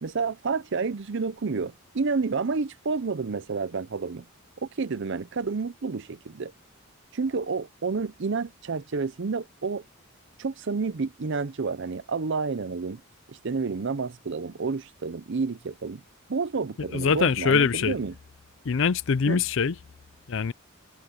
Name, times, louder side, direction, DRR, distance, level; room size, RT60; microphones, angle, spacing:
voice 1, 0.0-4.2 4.6-6.5 7.1-9.8 10.4-13.0 13.3-16.0 16.3-18.1 19.3-19.4, right 4 dB, 60° right, 0.6 m, -30 dB
voice 2, 16.9-18.0 18.7-19.8 20.3-20.5, left 6 dB, 60° left, 0.5 m, -23 dB
head